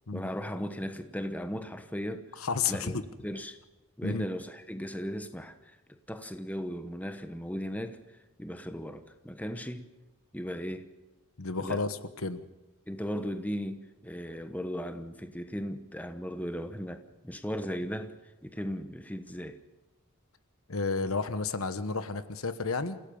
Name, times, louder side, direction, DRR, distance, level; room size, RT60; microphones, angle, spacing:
voice 1, 0.1-2.3 2.7-3.6 4.0-8.0 8.4-9.9 10.3-10.9 11.6-11.8 12.9-18.2 18.4-19.6, equal, 5° left, 1.1 m, -37 dB
voice 2, 2.4-3.0 4.0-4.3 11.4-12.4 20.7-23.0, left 4 dB, 80° left, 1.2 m, -31 dB
28.5 x 16.5 x 5.5 m
head